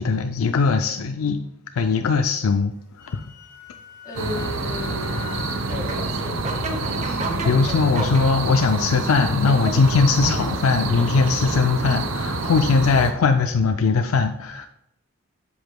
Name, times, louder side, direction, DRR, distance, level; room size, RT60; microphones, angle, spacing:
voice 1, 0.0-1.4 1.7-3.3 7.0-14.7, left 4 dB, 85° left, 7 dB, 0.4 m, -20 dB
Wind instrument woodwind instrument, 2.7-5.7, left 9 dB, 55° left, 1.3 m, -42 dB
voice 2, 4.0-5.3 5.7-6.7 7.2-8.1, left 1 dB, 15° left, -4 dB, 1.8 m, -35 dB
sound 1, 4.2-13.1, right 2 dB, 75° right, 0.7 m, -27 dB
sound 2, 5.7-11.6, right 2 dB, 35° right, 0.7 m, -33 dB
7.7 x 7.0 x 2.2 m, 0.80 s
head